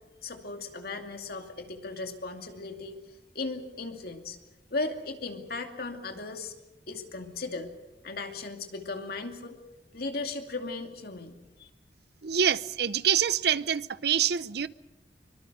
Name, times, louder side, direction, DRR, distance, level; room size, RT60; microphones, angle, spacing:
voice 1, 0.2-4.4 4.7-6.5 6.9-7.8 8.0-9.6 9.9-11.7, left 3 dB, 60° left, 2.5 m, -37 dB
voice 2, 12.2-14.7, right 8 dB, 65° right, 0.7 m, -26 dB
24.5 x 23.0 x 6.7 m
head